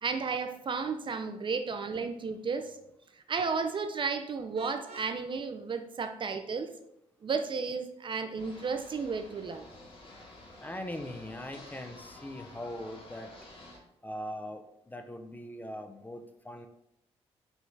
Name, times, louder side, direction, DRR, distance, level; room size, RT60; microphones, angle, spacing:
voice 1, 0.0-2.7 3.3-6.7 7.2-9.7, right 5 dB, 45° right, 8 dB, 0.4 m, -33 dB
Vehicle horn car horn honking, 4.5-5.2, right 4 dB, 85° right, 0.7 m, -49 dB
sound 1, 8.4-13.8, left 2 dB, 50° left, 1.3 m, -51 dB
voice 2, 10.6-13.3 14.0-16.7, left 1 dB, 15° left, 5 dB, 0.5 m, -41 dB
5.3 x 2.4 x 3.2 m, 0.78 s
cardioid pair, 65°, 12 cm